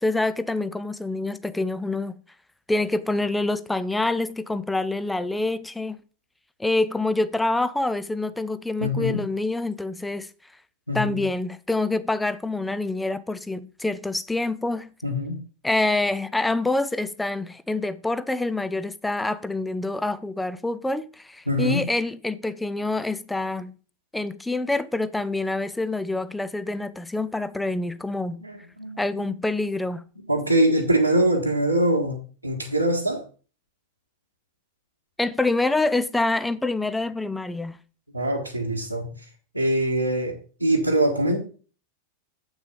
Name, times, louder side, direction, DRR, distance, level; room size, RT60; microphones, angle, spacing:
voice 1, 0.0-2.1 2.7-6.0 6.6-10.3 10.9-14.9 15.6-23.7 24.1-28.4 29.0-30.0 35.2-37.8, left 2 dB, 5° left, 0.5 m, -26 dB
voice 2, 8.8-9.2 10.9-11.2 15.0-15.4 21.5-21.9 28.4-29.3 30.3-33.2 38.1-39.1 39.5-41.4, right 1 dB, 90° right, 1.4 m, -23 dB
8.2 x 6.2 x 5.1 m
figure-of-eight pair, 90°, 0 cm